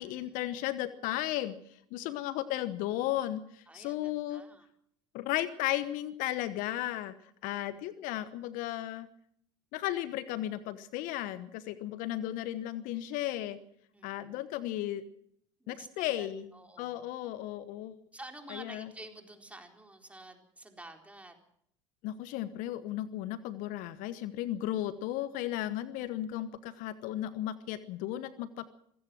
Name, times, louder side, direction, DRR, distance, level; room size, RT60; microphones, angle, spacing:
voice 1, 0.0-1.6 1.9-4.4 5.1-7.1 7.4-9.1 9.7-13.6 14.0-15.0 15.7-16.5 16.8-18.0 18.5-18.9 22.0-28.7, left 13 dB, 60° left, 14 dB, 1.2 m, -35 dB
voice 2, 2.0-2.4 3.7-4.7 7.4-7.8 13.9-14.4 15.6-17.1 18.1-21.4, right 1 dB, 10° right, 3 dB, 4.3 m, -51 dB
25.0 x 16.5 x 6.3 m, 0.68 s
hypercardioid pair, 70°, 16 cm